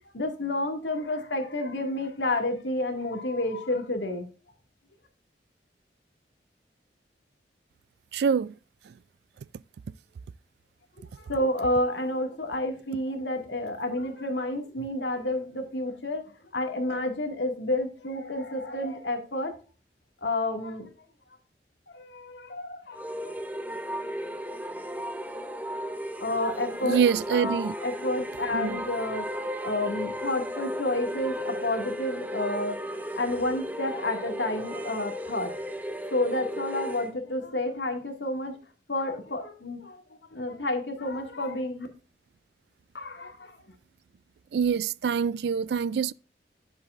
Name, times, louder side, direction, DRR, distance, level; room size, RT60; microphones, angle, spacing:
voice 1, 0.1-4.3 11.1-16.2 16.5-19.5 20.2-20.9 21.9-23.4 26.2-27.0 27.3-35.6 36.1-38.6 38.9-40.0 40.3-41.9 42.9-43.6, left 1 dB, 85° left, 2.0 m, -30 dB
voice 2, 8.1-8.5 26.8-27.7 28.5-28.8 44.5-46.1, right 6 dB, 70° right, 0.3 m, -25 dB
sound 1, 22.9-37.1, equal, 10° right, 0.7 m, -35 dB
10.5 x 7.4 x 2.5 m
head